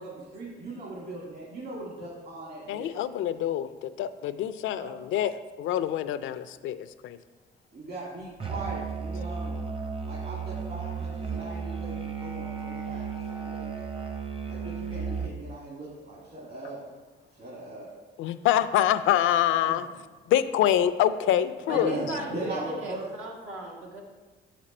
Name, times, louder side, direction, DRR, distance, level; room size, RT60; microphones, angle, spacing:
voice 1, 0.0-2.9 4.7-5.0 7.7-9.7 10.1-14.1 14.5-16.9 17.3-17.9 19.7-19.9 21.7-23.1, right 2 dB, 55° right, -6 dB, 2.0 m, -39 dB
voice 2, 2.7-7.2 18.2-19.9 20.3-21.9, left 11 dB, 80° left, 12 dB, 0.4 m, -26 dB
Musical instrument, 8.4-15.4, right 5 dB, 25° right, 0.7 m, -34 dB
voice 3, 21.7-24.0, right 1 dB, 85° right, -2 dB, 1.5 m, -36 dB
7.2 x 5.0 x 4.3 m, 1.3 s
cardioid pair, 90°, 20 cm